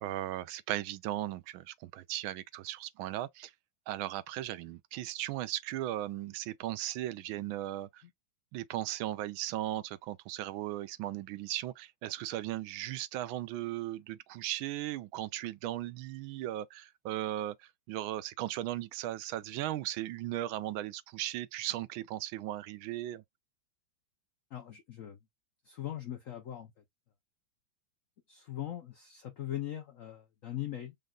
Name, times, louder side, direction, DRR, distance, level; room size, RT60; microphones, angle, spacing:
voice 1, 0.0-3.5 3.9-8.0 8.5-23.2, right 14 dB, 85° right, 1.4 m, -37 dB
voice 2, 24.5-25.2 25.6-26.7 28.3-30.9, left 12 dB, 75° left, 0.7 m, -40 dB
5.2 x 2.3 x 3.7 m
omnidirectional pair, 2.2 m